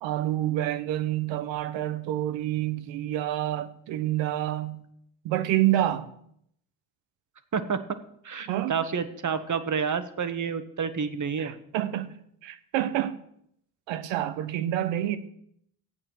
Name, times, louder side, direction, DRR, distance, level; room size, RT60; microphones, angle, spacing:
voice 1, 0.0-4.8 5.2-6.1 8.5-8.8 11.4-13.1 13.9-15.2, right 13 dB, 75° right, 1.1 m, -28 dB
voice 2, 8.2-11.5, right 6 dB, 40° right, 1.5 m, -29 dB
13.5 x 8.7 x 6.1 m
hypercardioid pair, 50°, 46 cm